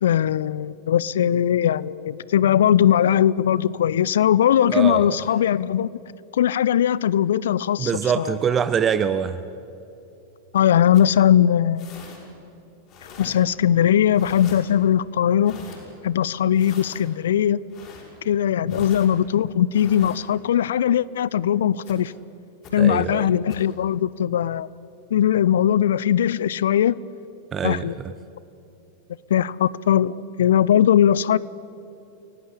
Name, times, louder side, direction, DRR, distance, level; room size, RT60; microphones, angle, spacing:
voice 1, 0.0-6.0 6.3-8.4 10.5-11.9 13.2-15.6 16.0-17.6 18.3-22.1 22.7-24.7 25.1-26.9 27.6-28.0 29.3-31.4, left 10 dB, 60° left, 0.5 m, -20 dB
voice 2, 4.7-5.1 7.8-9.5 18.8-18.9 22.8-23.3 27.5-27.8, right 7 dB, 25° right, 0.8 m, -23 dB
sound 1, 10.9-11.1 11.8-12.2 12.9-13.4 14.1-14.6 15.4-15.8 16.5-17.0 17.7-18.0 18.7-19.1 19.7-20.2 21.8-22.0 22.6-22.7 23.5-23.7, left 5 dB, 35° left, 6.9 m, -43 dB
29.0 x 18.0 x 8.6 m
figure-of-eight pair, 90°, 0 cm